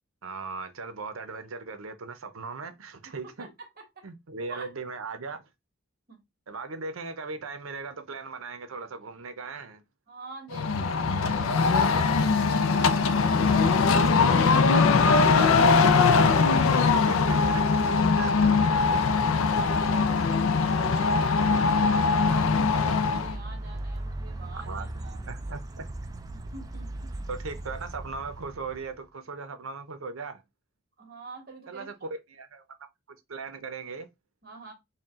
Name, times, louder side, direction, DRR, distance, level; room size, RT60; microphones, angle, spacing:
voice 1, 0.2-3.5 4.0-5.4 6.5-9.8 15.3-15.8 16.9-17.6 18.2-18.9 20.8-21.3 24.7-24.9 25.3-25.8 27.3-30.4 31.7-31.9 32.3-32.6 33.1-34.1, right 4 dB, 80° right, 0.7 m, -38 dB
voice 2, 3.0-4.0 4.5-4.7 6.1-6.2 10.1-13.1 14.2-15.4 15.7-16.5 18.8-19.1 19.8-20.9 21.3-25.3 26.3-27.1 31.0-31.9 34.4-34.7, right 3 dB, 45° right, 1.5 m, -46 dB
sound 1, 10.5-23.3, left 4 dB, 75° left, 0.4 m, -21 dB
sound 2, 11.8-29.0, right 2 dB, 15° right, 0.3 m, -40 dB
4.3 x 2.3 x 3.7 m
head